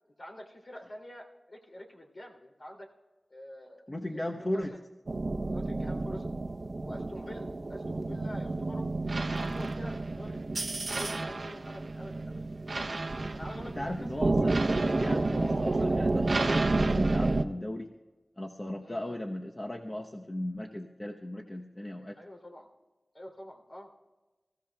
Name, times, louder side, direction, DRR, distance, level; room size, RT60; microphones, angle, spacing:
voice 1, 0.2-2.9 3.3-4.2 4.5-4.8 5.4-6.3 6.8-8.9 9.2-12.5 13.3-14.5 15.0-16.0 18.8-19.2 22.2-22.7 23.1-23.9, left 1 dB, 55° left, 0 dB, 2.8 m, -46 dB
voice 2, 3.9-4.7 13.8-17.9 18.4-22.2, left 1 dB, 30° left, 1 dB, 0.9 m, -37 dB
sound 1, 5.1-17.4, right 2 dB, 60° right, 0.8 m, -30 dB
26.5 x 15.5 x 2.3 m, 1.1 s
wide cardioid pair, 60°, 0 cm